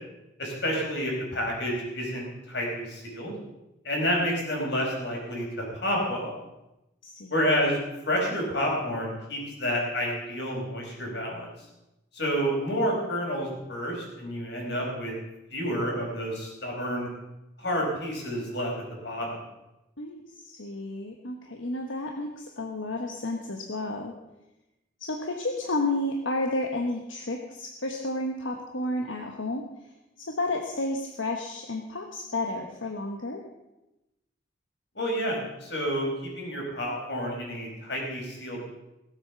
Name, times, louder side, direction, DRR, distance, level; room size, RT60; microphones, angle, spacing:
voice 1, 0.4-3.4 3.8-6.3 7.3-7.8 8.0-11.5 12.1-15.1 15.5-17.1 17.6-18.7 19.0-19.4 34.9-38.7, equal, 60° left, -1 dB, 4.7 m, -29 dB
voice 2, 7.0-7.3 20.0-24.1 25.0-29.6 30.2-33.4, left 2 dB, 80° left, 3 dB, 1.2 m, -31 dB
17.0 x 8.1 x 6.9 m, 0.96 s
head